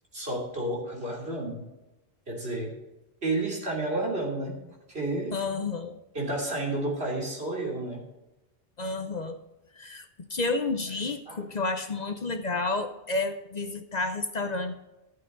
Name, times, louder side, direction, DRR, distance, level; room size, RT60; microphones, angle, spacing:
voice 1, 0.1-1.6 2.3-2.7 3.2-4.6 4.9-5.3 6.1-8.0 11.3-11.5, right 2 dB, 75° right, -3 dB, 3.4 m, -31 dB
voice 2, 5.3-6.0 8.8-9.4 9.7-14.7, left 3 dB, 45° left, 8 dB, 0.8 m, -30 dB
13.5 x 8.5 x 3.9 m, 0.97 s
omnidirectional pair, 1.1 m